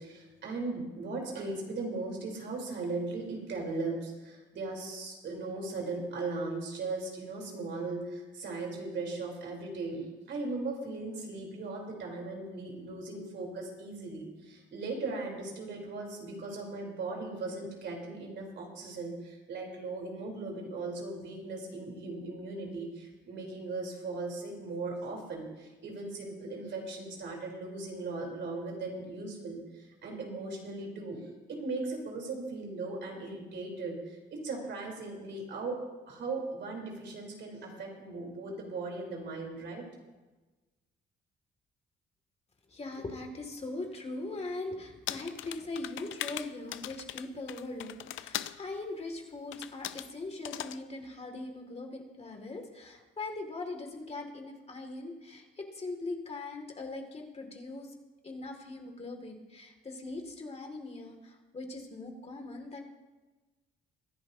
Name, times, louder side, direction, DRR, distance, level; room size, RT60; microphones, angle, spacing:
voice 1, 0.0-31.2 31.5-35.8 36.1-39.9, right 3 dB, 65° right, 0 dB, 3.6 m, -38 dB
voice 2, 42.7-57.9 58.2-62.8, left 2 dB, 30° left, 3 dB, 2.2 m, -41 dB
sound 1, 45.1-48.6 49.5-50.1 50.4-50.8, left 13 dB, 80° left, 0.5 m, -39 dB
23.5 x 10.5 x 2.7 m, 1.2 s
cardioid pair, 90°, 20 cm